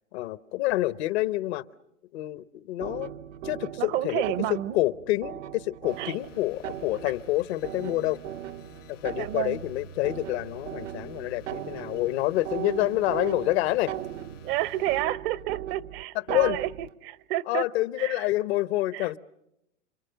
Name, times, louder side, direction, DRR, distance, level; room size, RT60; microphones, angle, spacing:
voice 1, 0.1-1.6 2.1-3.1 3.4-4.2 4.5-8.2 8.9-13.9 16.3-16.6 17.5-19.2, left 17 dB, 55° left, 17 dB, 0.9 m, -27 dB
sound 1, 2.8-16.9, right 12 dB, 70° right, 0.9 m, -39 dB
voice 2, 3.8-4.8 6.0-6.1 9.2-9.6 14.4-17.6 18.0-18.1 18.9-19.0, right 14 dB, 45° right, 18 dB, 0.9 m, -30 dB
sound 2, 5.8-15.0, left 10 dB, 85° left, 3.8 m, -53 dB
28.0 x 25.5 x 6.8 m, 0.84 s
hypercardioid pair, 120°, 37 cm